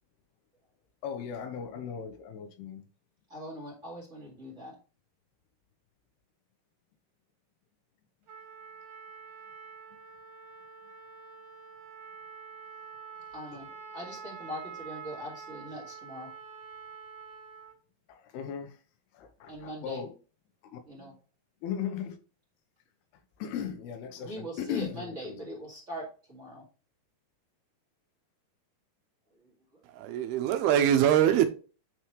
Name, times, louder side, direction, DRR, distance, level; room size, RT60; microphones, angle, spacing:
voice 1, 1.0-2.8 13.5-13.6 18.1-18.8 19.1-20.1 20.6-20.8 21.6-22.2 23.4-25.5, left 8 dB, 85° left, 2.9 m, -37 dB
voice 2, 3.3-4.8 13.3-13.7 13.9-16.3 19.5-20.0 20.9-21.1 24.2-26.6, equal, 25° right, 1.6 m, -41 dB
Trumpet, 8.3-17.8, right 6 dB, 45° right, 2.8 m, -46 dB
voice 3, 29.9-31.5, right 10 dB, 85° right, 2.6 m, -23 dB
9.0 x 4.5 x 3.1 m
omnidirectional pair, 4.6 m